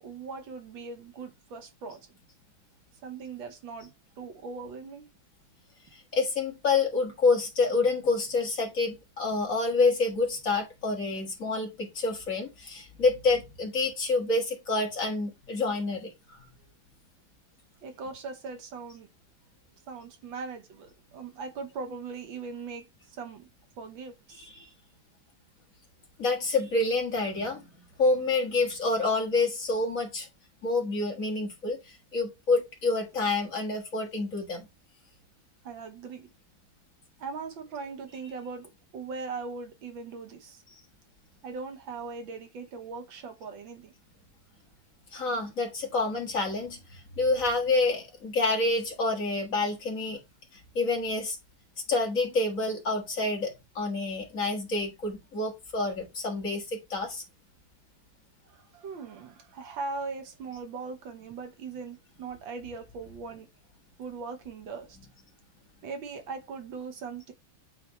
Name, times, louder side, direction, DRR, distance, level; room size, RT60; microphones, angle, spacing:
voice 1, 0.0-2.1 3.0-5.1 17.8-19.1 19.9-23.5 23.8-24.5 35.6-36.3 37.2-40.6 41.4-43.9 58.5-63.5 64.0-65.0 65.8-67.3, right 4 dB, 75° right, 1.8 m, -40 dB
voice 2, 5.9-16.4 24.4-24.7 26.2-27.7 28.0-30.3 30.6-34.7 45.1-50.2 50.8-51.4 51.9-57.2, left 3 dB, 45° left, 2.0 m, -28 dB
8.6 x 3.5 x 3.2 m
omnidirectional pair, 2.2 m